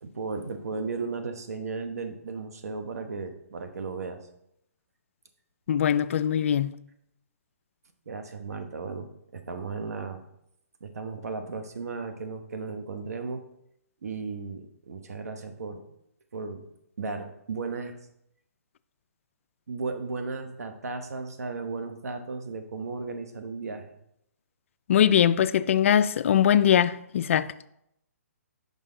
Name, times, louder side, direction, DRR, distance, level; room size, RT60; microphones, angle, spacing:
voice 1, 0.0-4.3 8.1-9.1 9.3-10.2 10.8-13.4 14.0-15.8 16.3-16.6 17.0-18.0 19.7-23.9, right 4 dB, 75° right, 1.0 m, -35 dB
voice 2, 5.7-6.7 24.9-27.5, left 9 dB, 55° left, 0.3 m, -21 dB
6.3 x 5.1 x 3.8 m
hypercardioid pair, 150°, 8 cm